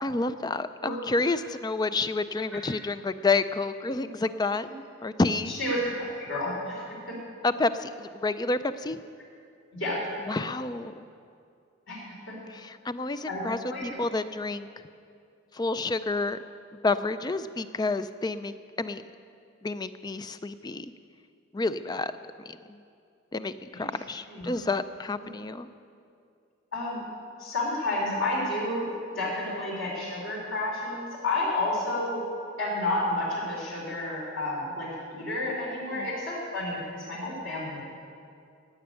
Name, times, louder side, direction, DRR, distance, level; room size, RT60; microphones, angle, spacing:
voice 1, 0.0-4.7 5.0-5.5 7.4-9.0 10.3-11.0 12.5-14.7 15.5-16.4 16.8-19.1 19.6-20.9 21.5-22.1 22.5-22.6 23.3-25.7 35.9-36.1, left 3 dB, 20° left, 12 dB, 0.4 m, -29 dB
voice 2, 5.5-6.8 7.1-7.2 9.7-10.0 11.9-12.0 12.3-12.4 13.3-13.8 23.7-23.8 24.3-24.5 26.7-27.0 27.4-28.9 29.1-32.2 32.6-37.8, left 2 dB, 60° left, -5 dB, 4.4 m, -30 dB
17.0 x 7.0 x 8.9 m, 2.4 s
head